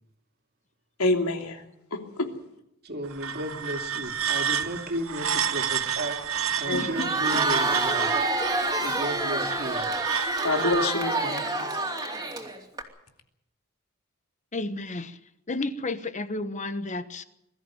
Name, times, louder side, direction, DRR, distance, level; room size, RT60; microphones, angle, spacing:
voice 1, 1.0-1.6 1.9-2.3 6.7-6.8 10.4-11.7, left 2 dB, 85° left, 4 dB, 3.1 m, -27 dB
voice 2, 2.8-6.2 6.6-8.3 8.7-9.9, right 1 dB, 50° right, 4 dB, 2.7 m, -34 dB
sound 1, 3.0-10.9, right 8 dB, 65° right, 1.1 m, -30 dB
voice 3, 6.7-7.1 14.5-15.2 15.5-17.2, left 2 dB, 35° left, 11 dB, 1.2 m, -32 dB
Crowd, 6.8-12.8, right 2 dB, 20° right, 2.8 m, -28 dB
22.5 x 14.0 x 9.2 m, 0.81 s
head